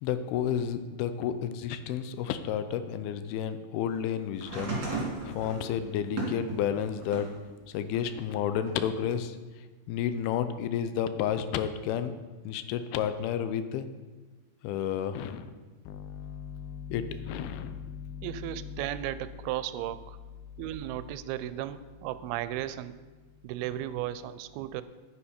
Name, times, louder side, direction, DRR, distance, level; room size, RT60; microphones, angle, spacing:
voice 1, 0.0-4.8 5.2-7.3 7.7-9.3 9.9-12.1 12.5-13.9 14.6-15.5 15.9-18.8, left 9 dB, 85° left, 11 dB, 2.6 m, -31 dB
sound 1, 4.4-7.4 7.9-9.0 10.1-10.2, right 3 dB, 35° right, 2.9 m, -36 dB
voice 2, 18.2-20.2 20.6-23.0 23.4-24.8, right 13 dB, 90° right, 14 dB, 2.5 m, -35 dB
10.0 x 9.6 x 4.4 m, 1.3 s
omnidirectional pair, 4.3 m